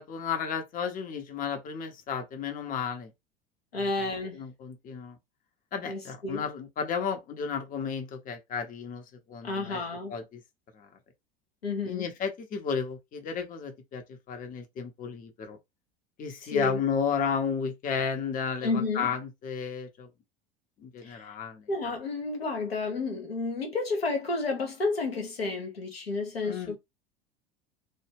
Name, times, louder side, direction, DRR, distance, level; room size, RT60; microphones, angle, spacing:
voice 1, 0.0-3.1 3.7-5.2 5.7-9.8 10.1-10.4 10.7-10.9 11.8-15.6 16.2-20.1 20.8-21.7 26.4-26.8, left 6 dB, 30° left, 0.6 m, -33 dB
voice 2, 3.7-4.4 5.9-6.5 9.4-10.1 11.6-12.1 16.4-16.8 18.6-19.1 21.0-21.2 21.7-26.8, left 3 dB, 85° left, 0.8 m, -31 dB
2.2 x 2.0 x 3.3 m
figure-of-eight pair, 75°, 30 cm